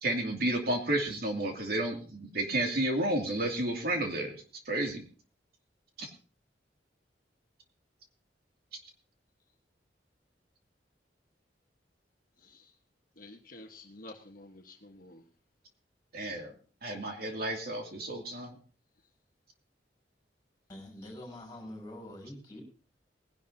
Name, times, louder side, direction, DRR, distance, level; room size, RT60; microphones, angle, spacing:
voice 1, 0.0-4.4 4.7-5.0 6.0-6.1 16.1-16.5 16.8-18.5, right 1 dB, 60° right, 2 dB, 2.5 m, -31 dB
voice 2, 13.2-15.2, left 2 dB, 50° left, 2 dB, 1.3 m, -50 dB
voice 3, 20.7-22.6, left 1 dB, 20° left, 1 dB, 5.6 m, -45 dB
20.0 x 11.0 x 2.8 m, 0.38 s
head